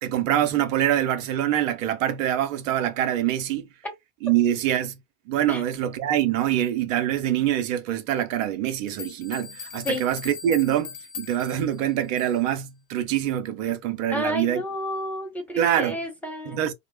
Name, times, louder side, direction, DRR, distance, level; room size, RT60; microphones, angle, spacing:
voice 1, 0.0-3.7 4.2-5.0 5.3-14.6 15.6-16.0 16.5-16.7, right 11 dB, 65° right, 0.7 m, -25 dB
sound 1, 8.9-12.6, left 8 dB, 80° left, 0.7 m, -40 dB
voice 2, 14.1-16.6, equal, 5° left, 1.2 m, -30 dB
2.1 x 2.0 x 3.2 m
figure-of-eight pair, 70°, 41 cm